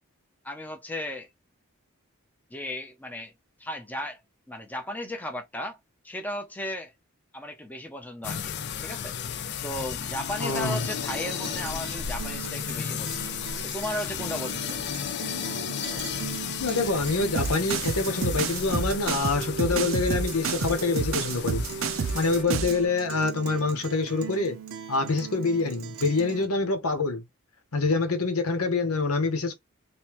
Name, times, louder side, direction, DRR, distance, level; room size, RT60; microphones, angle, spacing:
voice 1, 0.4-1.3 2.5-3.3 3.6-4.2 4.5-5.8 6.0-6.9 7.3-8.5 8.8-9.1 9.6-13.3 13.6-14.8, left 1 dB, 10° left, 0.6 m, -35 dB
sound 1, 8.2-22.4, left 8 dB, 50° left, 0.4 m, -34 dB
voice 2, 10.4-10.8 16.6-21.6 22.1-24.6 24.9-27.2 27.7-29.5, left 3 dB, 90° left, 1.1 m, -26 dB
Guitar, 10.4-26.5, right 7 dB, 80° right, 0.9 m, -40 dB
sound 2, 17.4-22.8, right 5 dB, 65° right, 0.5 m, -29 dB
3.4 x 2.8 x 3.0 m
head